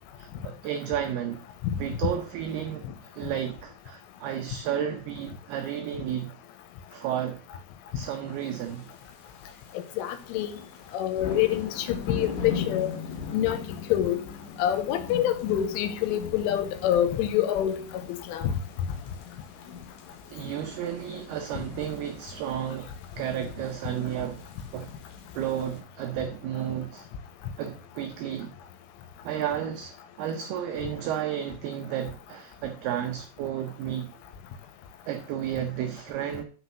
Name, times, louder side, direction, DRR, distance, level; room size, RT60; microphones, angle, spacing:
voice 1, 0.2-1.4 1.8-6.3 6.9-7.4 7.9-8.9 20.3-22.9 23.2-24.4 24.7-24.9 25.3-27.1 27.6-28.5 29.2-34.1 35.1-36.4, right 10 dB, 85° right, 2.2 m, -32 dB
sound 1, 8.7-9.0 9.4-9.7 10.1-25.8, left 6 dB, 60° left, 2.4 m, -40 dB
voice 2, 10.0-10.5 10.9-12.9 13.3-13.6 13.9-14.2 14.6-17.8 18.1-18.5, left 11 dB, 90° left, 3.4 m, -26 dB
6.4 x 6.0 x 6.7 m
omnidirectional pair, 5.6 m